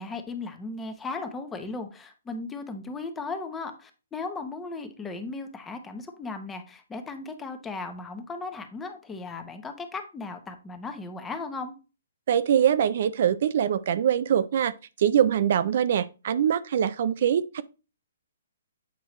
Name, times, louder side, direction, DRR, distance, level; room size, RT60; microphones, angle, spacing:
voice 1, 0.0-11.7, left 3 dB, 10° left, 0.8 m, -36 dB
voice 2, 12.3-17.6, right 9 dB, 55° right, 0.4 m, -23 dB
8.1 x 4.6 x 3.0 m
hypercardioid pair, 150°, 0 cm